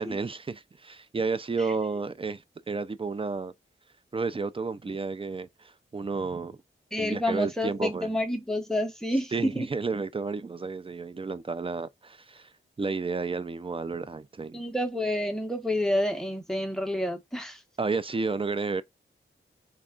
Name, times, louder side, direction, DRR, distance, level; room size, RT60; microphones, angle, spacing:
voice 1, 0.0-3.5 4.1-6.6 7.0-8.1 9.3-12.5 12.8-14.6 17.8-18.8, right 4 dB, 25° right, 0.4 m, -31 dB
voice 2, 6.9-9.7 14.5-17.6, left 1 dB, ahead, 0.9 m, -29 dB
3.3 x 2.4 x 3.6 m
wide cardioid pair, 75°, 21 cm